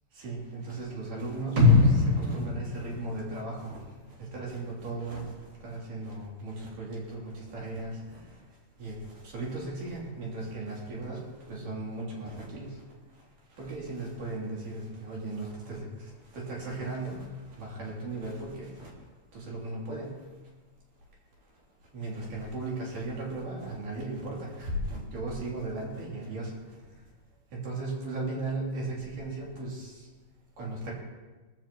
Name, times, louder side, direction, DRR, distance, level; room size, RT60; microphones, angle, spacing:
voice 1, 0.2-3.8 4.2-5.3 5.6-8.0 8.8-9.0 9.3-11.2 11.5-12.7 13.6-15.9 16.3-17.3 17.6-18.9 19.3-20.2 21.9-26.5 27.5-29.9 30.6-30.9, right 2 dB, 70° right, -4 dB, 4.8 m, -36 dB
sound 1, 1.6-3.7 4.1-4.2, left 3 dB, 40° right, 1.9 m, -22 dB
19.0 x 15.0 x 3.1 m, 1.3 s
omnidirectional pair, 3.9 m